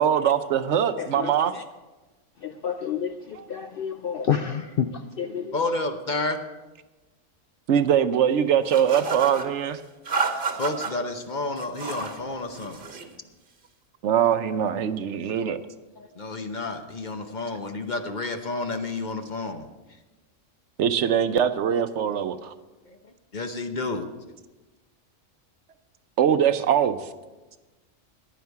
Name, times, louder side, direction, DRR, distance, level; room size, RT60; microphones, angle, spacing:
voice 1, 0.0-1.6 7.7-9.8 14.0-15.6 20.8-22.5 26.2-27.1, right 8 dB, 65° right, 0.9 m, -22 dB
voice 2, 1.0-1.6 2.4-5.7, left 8 dB, 60° left, 0.6 m, -29 dB
voice 3, 5.5-6.4 10.6-12.9 16.0-19.7 23.3-24.0, left 2 dB, 40° left, 0.9 m, -30 dB
sound 1, 8.7-9.5 10.0-10.9 11.6-12.2 12.5-13.1, right 4 dB, 45° right, 1.3 m, -30 dB
15.0 x 10.5 x 4.7 m
omnidirectional pair, 1.3 m